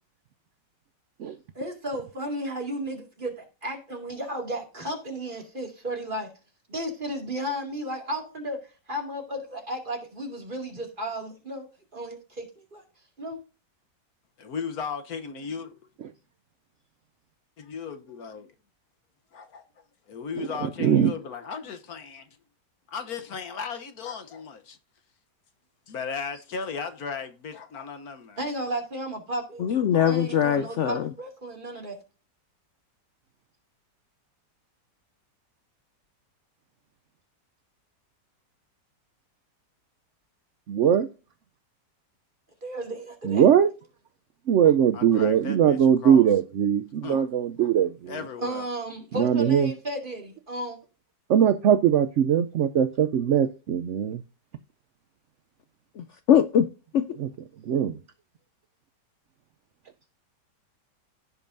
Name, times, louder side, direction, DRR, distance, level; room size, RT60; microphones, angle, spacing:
voice 1, 1.6-6.3 6.7-8.6 8.9-11.7 11.9-12.8 13.2-13.4 28.4-29.7 30.0-32.0 42.6-43.5 48.4-50.8, right 1 dB, 30° right, 2.4 m, -34 dB
voice 2, 14.4-15.7 17.6-18.5 19.3-19.6 20.1-22.3 22.9-24.8 25.9-28.4 44.6-46.3 47.0-47.3 47.6-47.7 48.1-48.7, left 5 dB, 60° left, 1.3 m, -36 dB
voice 3, 20.4-21.1 40.7-41.1 43.2-43.7 44.5-48.1 49.1-49.7 51.3-54.2 57.2-57.3 57.7-58.0, right 9 dB, 75° right, 0.7 m, -21 dB
voice 4, 29.6-31.1 56.0-56.7 56.9-57.0, left 9 dB, 80° left, 0.6 m, -22 dB
16.0 x 5.3 x 2.6 m
omnidirectional pair, 1.9 m